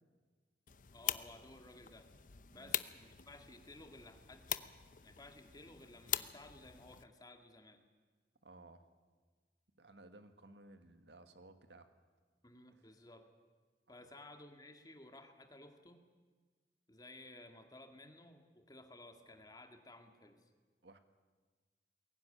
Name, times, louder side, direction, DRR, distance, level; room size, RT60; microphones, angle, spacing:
sound 1, 0.7-7.0, left 11 dB, 45° left, 0.7 m, -43 dB
voice 1, 0.9-2.1 2.5-4.5 5.0-7.8 12.4-13.3 13.9-16.0 16.9-20.4, left 2 dB, 20° left, 6 dB, 1.9 m, -56 dB
voice 2, 8.4-8.9 9.8-11.9 12.7-12.9 20.8-21.0, right 2 dB, 75° right, 8 dB, 1.7 m, -58 dB
21.5 x 17.5 x 10.0 m, 1.4 s
head